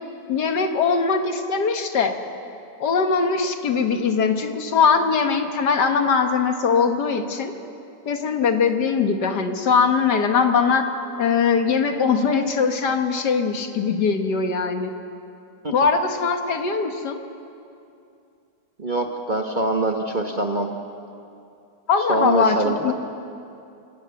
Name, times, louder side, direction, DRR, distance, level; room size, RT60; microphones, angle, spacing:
voice 1, 0.3-2.2 2.8-7.5 8.1-10.9 11.2-14.9 15.7-17.2 21.9-22.9, left 5 dB, 70° left, 6 dB, 1.9 m, -21 dB
voice 2, 18.8-20.7 22.1-22.8, right 2 dB, 30° right, 3 dB, 1.1 m, -23 dB
26.5 x 17.0 x 7.1 m, 2.5 s
omnidirectional pair, 1.9 m